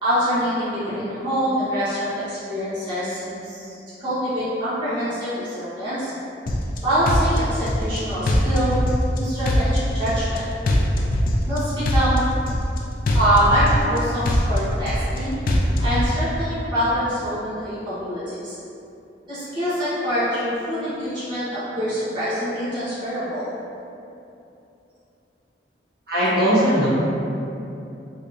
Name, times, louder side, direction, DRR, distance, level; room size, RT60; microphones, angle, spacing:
voice 1, 0.0-3.7 4.0-6.1 6.8-8.7 9.1-10.4 11.5-12.2 13.1-15.4 15.8-18.6 19.3-23.5, equal, 25° right, -14 dB, 1.1 m, -25 dB
sound 1, 6.5-6.8 7.1-8.0 8.3-9.2 9.5-10.4 10.7-11.6 11.9-12.8 13.1-14.0 14.3-15.2 15.5-16.1, left 1 dB, 55° left, 0.4 m, -21 dB
voice 2, 26.1-26.9, equal, 65° right, -12 dB, 1.4 m, -19 dB
3.4 x 3.2 x 2.6 m, 2.7 s
head